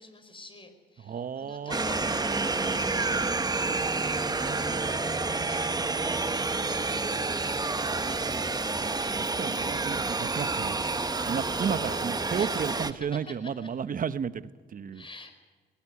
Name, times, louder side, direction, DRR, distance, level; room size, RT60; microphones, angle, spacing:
voice 1, 0.0-8.1 12.3-13.7 14.9-15.3, left 2 dB, 25° left, 7 dB, 5.1 m, -48 dB
voice 2, 1.1-1.7 3.1-3.3 8.8-8.9 9.2-10.8 11.3-15.0, right 7 dB, 45° right, 14 dB, 1.1 m, -33 dB
sound 1, 1.7-12.9, right 3 dB, 20° right, 1.2 m, -29 dB
20.0 x 17.5 x 9.7 m, 1.4 s
cardioid pair, 90°, 20 cm